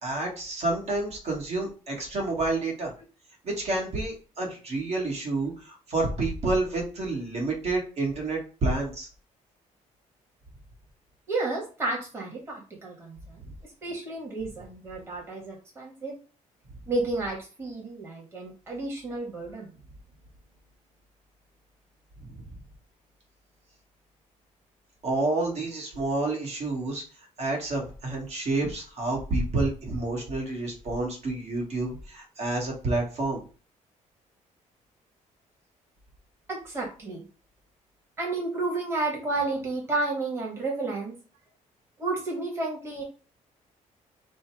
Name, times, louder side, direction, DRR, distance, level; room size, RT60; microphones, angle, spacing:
voice 1, 0.0-2.9 3.4-9.1 22.2-22.5 25.0-27.0 27.4-33.4, right 2 dB, 50° right, -1 dB, 1.7 m, -29 dB
voice 2, 11.3-13.4 13.8-16.1 16.9-19.7 36.5-37.2 38.2-41.1 42.0-43.0, right 2 dB, 20° right, -2 dB, 1.4 m, -31 dB
5.2 x 2.2 x 4.7 m, 0.36 s
cardioid pair, 155°, 13 cm